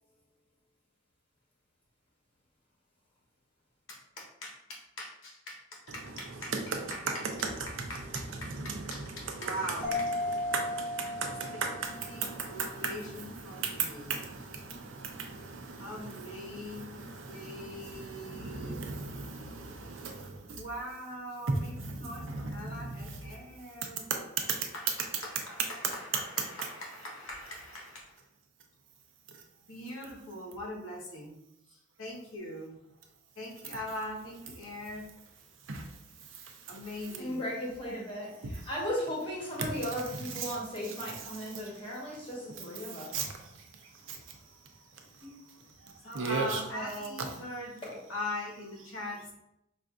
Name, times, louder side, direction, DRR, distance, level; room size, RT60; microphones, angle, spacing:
voice 1, 3.9-7.2 7.7-10.1 12.1-14.2 15.8-19.4 20.5-24.1 24.5-28.2 29.7-31.3 31.7-32.8 33.4-35.1 36.7-37.4 46.0-47.8 48.1-49.3, left 1 dB, 85° left, 1.0 m, -42 dB
voice 2, 8.4-9.3 10.5-20.6 21.5-23.2 24.1-24.2 35.7-35.9 36.7-36.8 38.4-38.5 39.6-39.7 40.1-40.6 40.8-40.9 41.3-41.7 42.7-43.3 44.1-44.2 45.8-46.6, right 4 dB, 75° right, 0.6 m, -37 dB
Mallet percussion, 9.8-12.3, left 2 dB, 10° right, 0.6 m, -35 dB
voice 3, 37.2-43.3 45.2-45.3 46.7-47.1 47.8-47.9, equal, 25° left, 1.0 m, -36 dB
5.3 x 2.5 x 2.4 m
head